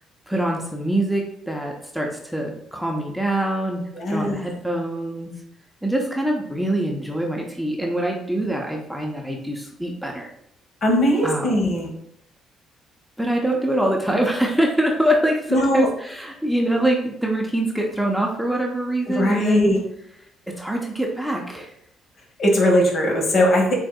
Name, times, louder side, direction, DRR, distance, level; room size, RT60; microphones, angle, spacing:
voice 1, 0.3-5.3 5.8-10.3 11.2-11.7 13.2-19.8 20.6-21.7, right 1 dB, ahead, 0 dB, 0.9 m, -24 dB
voice 2, 3.9-4.4 10.8-11.9 15.5-15.9 19.1-19.8 22.4-23.7, left 1 dB, 55° left, -1 dB, 1.5 m, -19 dB
7.3 x 2.6 x 2.3 m, 0.73 s
hypercardioid pair, 50°, 0 cm